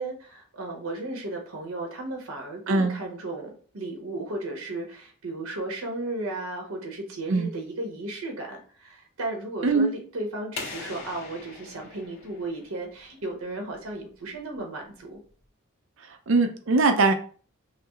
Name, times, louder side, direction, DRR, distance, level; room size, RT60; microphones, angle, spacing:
voice 1, 0.0-15.2, right 2 dB, 80° right, 2 dB, 1.0 m, -35 dB
voice 2, 9.6-9.9 16.3-17.1, right 3 dB, 65° right, 6 dB, 0.6 m, -21 dB
sound 1, 10.6-13.2, left 4 dB, 50° left, 1.4 m, -41 dB
5.7 x 2.0 x 3.0 m, 0.43 s
head